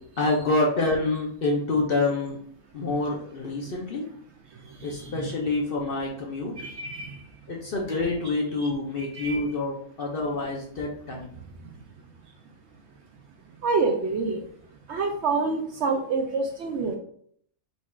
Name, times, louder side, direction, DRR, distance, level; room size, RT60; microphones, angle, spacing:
voice 1, 0.2-2.4 2.7-4.0 4.8-6.5 7.5-11.4, left 2 dB, 55° left, -1 dB, 0.7 m, -27 dB
voice 2, 4.8-5.3 6.6-7.2 8.2-8.4 9.1-9.4 13.6-14.4 14.9-17.0, right 4 dB, 65° right, 3 dB, 0.7 m, -27 dB
4.4 x 2.4 x 4.2 m, 0.62 s
omnidirectional pair, 1.5 m